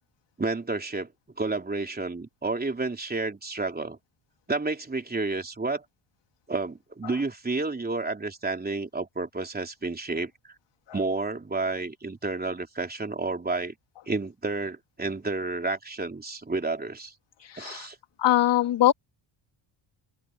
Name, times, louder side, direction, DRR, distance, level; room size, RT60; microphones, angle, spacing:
voice 1, 0.4-1.1 1.4-4.0 4.5-5.8 6.5-10.5 10.9-13.7 14.1-17.1 17.6-18.0, right 3 dB, 20° right, 3.4 m, -30 dB
voice 2, 17.4-17.9 18.2-18.9, left 14 dB, 60° left, 1.9 m, -22 dB
open air
supercardioid pair, 80°, 48 cm